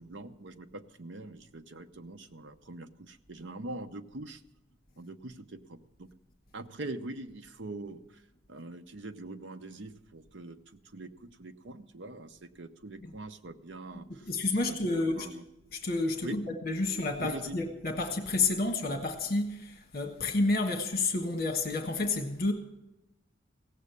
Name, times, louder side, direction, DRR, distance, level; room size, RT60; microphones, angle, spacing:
voice 1, 0.0-4.4 5.0-6.1 6.5-8.2 8.5-14.3 14.6-15.4 16.2-16.4 17.2-17.6, right 2 dB, 80° right, 0.8 m, -43 dB
voice 2, 14.2-15.3 15.7-22.5, left 3 dB, 55° left, 1.3 m, -30 dB
16.5 x 7.5 x 8.3 m
head